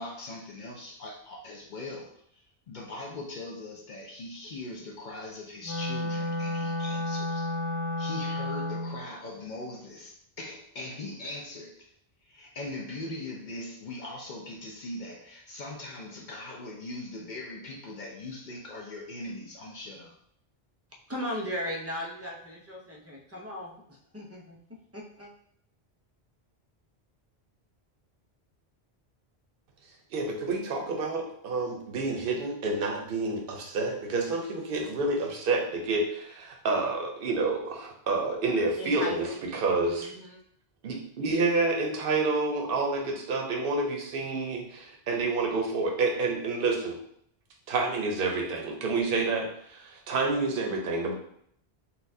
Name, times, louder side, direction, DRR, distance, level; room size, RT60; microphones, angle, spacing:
voice 1, 0.0-7.5 8.0-11.9 12.3-20.1, left 2 dB, 55° left, 0 dB, 0.6 m, -40 dB
Wind instrument woodwind instrument, 5.6-9.0, left 1 dB, 90° left, 1.2 m, -31 dB
voice 2, 21.1-24.6 24.9-25.3 38.8-39.4 39.8-40.4, equal, 20° right, -2 dB, 0.4 m, -37 dB
voice 3, 30.1-40.1 40.8-47.0 47.7-51.1, right 3 dB, 65° right, 1 dB, 0.8 m, -29 dB
4.1 x 2.3 x 2.6 m, 0.67 s
omnidirectional pair, 1.1 m